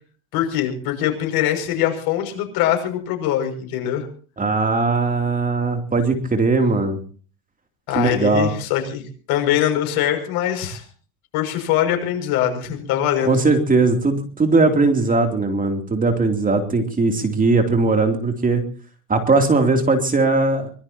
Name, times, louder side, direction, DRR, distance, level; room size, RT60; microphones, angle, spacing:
voice 1, 0.3-4.1 7.9-9.0 9.3-10.8 11.3-13.4, left 11 dB, 55° left, 4 dB, 6.4 m, -22 dB
voice 2, 4.4-7.0 8.0-8.5 13.2-18.6 19.1-20.7, right 3 dB, 20° right, 5 dB, 3.0 m, -19 dB
24.0 x 20.5 x 2.9 m, 0.42 s
hypercardioid pair, 100°, 43 cm